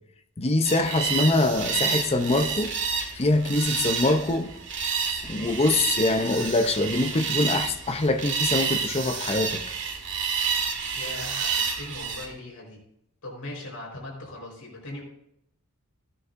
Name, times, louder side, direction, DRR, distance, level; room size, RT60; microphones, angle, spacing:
voice 1, 0.4-2.7 3.1-4.5 5.2-9.6, left 2 dB, 30° left, 0.7 m, -24 dB
sound 1, 0.6-12.3, right 6 dB, 60° right, 1.8 m, -29 dB
voice 2, 10.9-12.8 13.2-15.0, left 2 dB, 80° left, 4.3 m, -39 dB
15.5 x 9.9 x 2.6 m
head